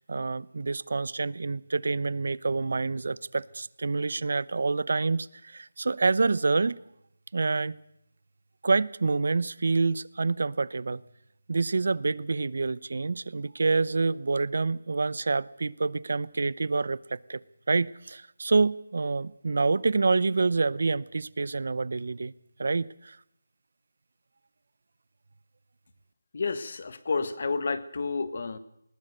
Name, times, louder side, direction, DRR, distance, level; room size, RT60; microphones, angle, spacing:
voice 1, 0.0-6.8 7.3-7.8 8.6-11.0 11.5-17.4 17.7-22.3 22.6-23.2, right 3 dB, 60° right, 21 dB, 0.7 m, -27 dB
voice 2, 26.3-28.6, left 4 dB, 45° left, 13 dB, 1.5 m, -30 dB
20.0 x 20.0 x 6.7 m, 0.80 s
figure-of-eight pair, 175°, 0 cm